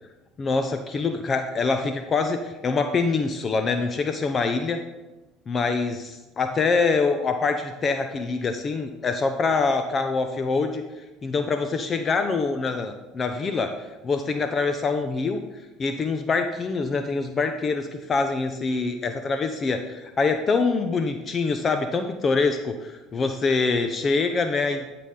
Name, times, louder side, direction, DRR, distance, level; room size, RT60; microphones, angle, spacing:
voice 1, 0.4-4.8 5.5-10.8 11.2-13.8 14.0-15.4 15.8-24.8, left 4 dB, 35° left, 7 dB, 0.7 m, -25 dB
12.0 x 5.9 x 3.8 m, 1.1 s
supercardioid pair, 90°, 0 cm